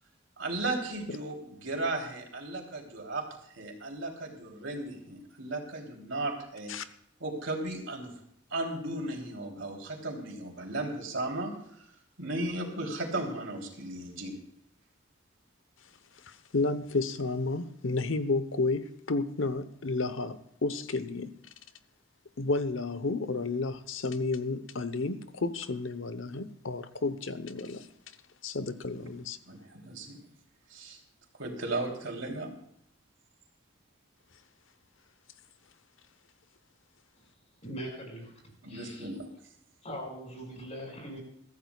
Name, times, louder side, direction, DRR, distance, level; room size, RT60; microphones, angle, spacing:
voice 1, 0.4-3.2 3.5-6.7 7.2-8.1 8.5-11.5 12.2-14.3 29.5-30.2 30.7-31.0 31.4-32.5 38.6-39.3, right 2 dB, 75° right, 3.3 m, -35 dB
voice 2, 16.2-21.3 22.4-27.9 28.4-29.4, left 3 dB, 80° left, 1.0 m, -31 dB
voice 3, 37.6-38.3 38.7-39.1 39.8-41.2, equal, 35° left, 5.9 m, -41 dB
23.5 x 14.0 x 2.4 m
head